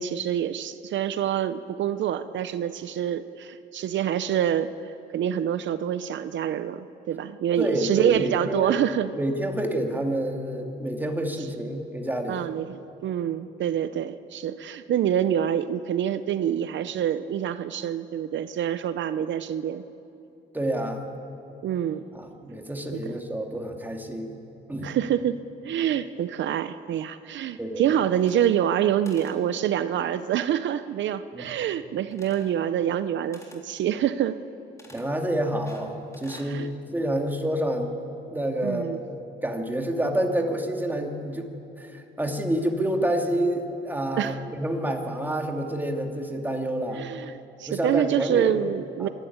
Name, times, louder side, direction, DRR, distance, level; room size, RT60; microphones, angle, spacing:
voice 1, 0.0-9.1 12.3-19.8 21.6-22.1 22.9-23.0 24.8-25.4 25.6-34.4 36.3-36.7 38.6-39.0 44.2-44.4 46.9-49.1, right 10 dB, 70° right, 12 dB, 0.7 m, -26 dB
voice 2, 7.6-8.8 9.2-12.5 20.5-21.1 22.1-24.3 24.7-24.9 27.6-27.8 31.3-31.5 34.9-38.0 38.3-39.1 39.4-41.5 41.8-47.0 47.7-48.5 49.0-49.1, right 1 dB, 10° right, 2 dB, 2.6 m, -28 dB
sound 1, 28.1-28.8 29.0-29.4 32.1-32.6 33.3-33.6 34.8-35.1 35.7-36.5, left 1 dB, 15° left, 3.9 m, -50 dB
25.0 x 12.0 x 9.5 m, 2.8 s
cardioid pair, 90°, 20 cm